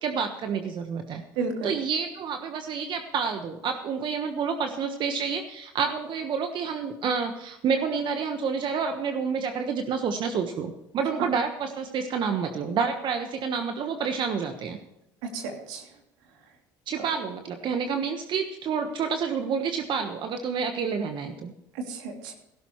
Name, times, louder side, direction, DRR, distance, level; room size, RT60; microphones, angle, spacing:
voice 1, 0.0-1.2 1.6-14.8 16.9-21.5, right 6 dB, 55° right, 6 dB, 1.3 m, -29 dB
voice 2, 1.3-1.7 11.2-11.3 15.2-16.0 16.3-16.5 16.9-17.0 21.7-22.3, right 4 dB, 85° right, 2 dB, 3.0 m, -33 dB
16.5 x 13.0 x 3.1 m, 0.90 s
supercardioid pair, 80°, 10 cm